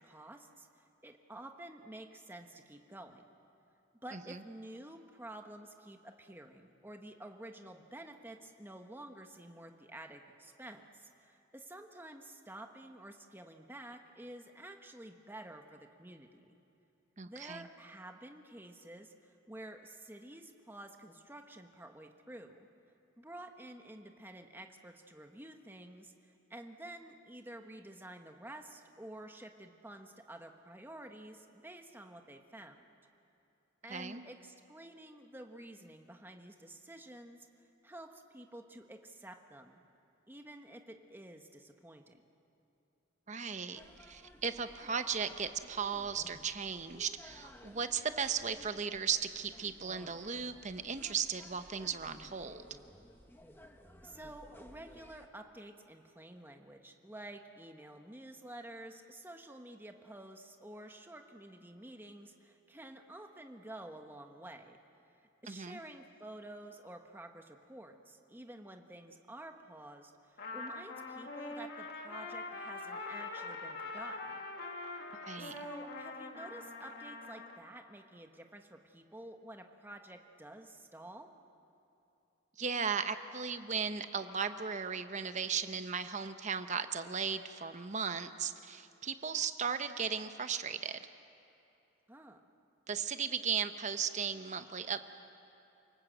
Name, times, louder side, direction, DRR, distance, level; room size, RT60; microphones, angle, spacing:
voice 1, 0.0-3.2 4.0-16.4 17.3-22.7 23.2-32.9 33.8-37.5 37.8-39.8 40.3-42.2 54.0-64.8 65.4-74.4 75.4-81.3 92.1-92.4, right 1 dB, 10° right, 5 dB, 1.1 m, -50 dB
voice 2, 17.2-17.7 33.9-34.2 43.3-52.6 65.5-65.8 75.3-75.5 82.6-91.0 92.9-95.0, right 6 dB, 35° right, 10 dB, 0.8 m, -36 dB
sound 1, 43.7-55.3, left 1 dB, 10° left, 1.0 m, -57 dB
Trumpet, 70.4-77.6, left 3 dB, 50° left, 2.0 m, -43 dB
28.5 x 19.0 x 7.9 m, 2.8 s
head